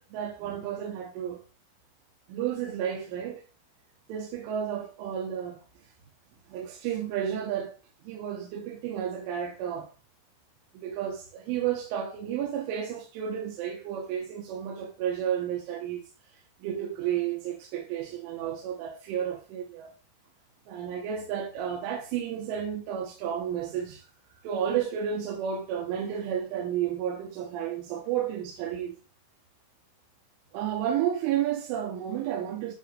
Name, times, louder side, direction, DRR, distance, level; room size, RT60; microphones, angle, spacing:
voice 1, 0.1-1.4 2.3-3.4 4.1-5.6 6.5-7.8 8.0-9.9 10.7-16.1 16.6-19.9 20.7-24.1 24.4-29.0 30.5-32.7, right 9 dB, 85° right, 3.5 m, -32 dB
10.0 x 3.9 x 3.3 m
omnidirectional pair, 5.6 m